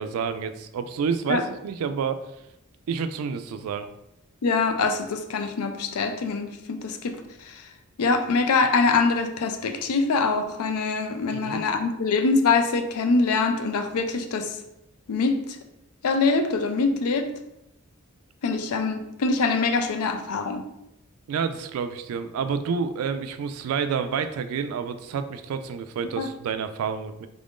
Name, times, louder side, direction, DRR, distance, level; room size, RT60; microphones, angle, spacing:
voice 1, 0.0-2.2 2.9-3.9 11.3-11.6 21.3-27.3, right 6 dB, 80° right, 10 dB, 0.3 m, -29 dB
voice 2, 4.4-7.2 8.0-14.5 15.1-15.4 16.0-17.3 18.4-20.6 26.2-26.3, left 4 dB, 85° left, 7 dB, 0.4 m, -24 dB
3.6 x 2.5 x 3.5 m, 0.88 s
head